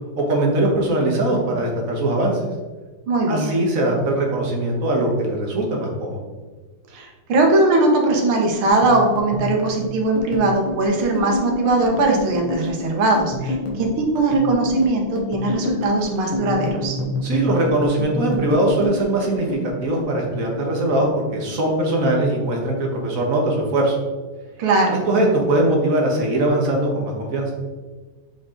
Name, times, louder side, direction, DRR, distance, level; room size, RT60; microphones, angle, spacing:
voice 1, 0.1-2.4 3.3-6.2 17.2-24.0 25.1-27.5, right 1 dB, 45° right, 0 dB, 1.5 m, -21 dB
voice 2, 3.1-3.6 6.9-17.0 24.6-25.0, right 2 dB, 80° right, 2 dB, 2.0 m, -20 dB
sound 1, 8.5-21.1 21.3-22.4 22.7-23.0 23.3-24.0, left 1 dB, 80° left, 2.2 m, -28 dB
7.3 x 4.5 x 3.8 m, 1.3 s
omnidirectional pair, 2.3 m